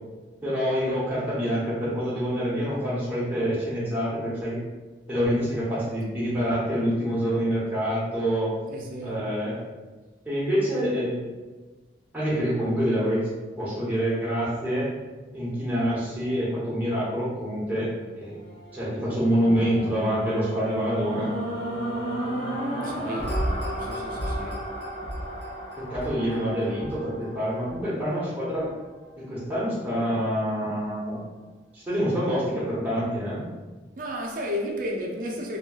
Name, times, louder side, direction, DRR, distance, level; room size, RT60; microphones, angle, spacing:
voice 1, 0.4-4.6 5.1-8.5 9.0-9.6 10.3-11.2 12.1-13.3 13.6-14.9 15.3-18.4 18.7-21.3 25.8-28.7 29.2-31.2 31.7-33.4, equal, 10° right, 0.8 m, -26 dB
voice 2, 8.7-9.2 22.8-23.4 23.8-24.6 34.0-35.6, equal, 45° right, 0.4 m, -33 dB
sound 1, 18.1-28.4 29.0-29.1, right 1 dB, 75° left, 1.1 m, -33 dB
2.9 x 2.7 x 2.3 m
head